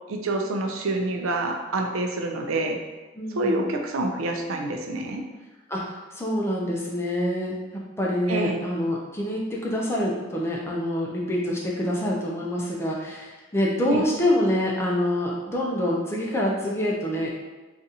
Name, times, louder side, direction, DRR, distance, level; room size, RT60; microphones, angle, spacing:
voice 1, 0.1-2.8 3.3-5.2 8.3-8.6 13.9-14.0, right 2 dB, 90° right, 3 dB, 0.4 m, -27 dB
voice 2, 3.2-3.6 5.7-17.3, left 1 dB, 10° left, -3 dB, 0.4 m, -26 dB
3.9 x 2.5 x 2.7 m, 1.2 s
head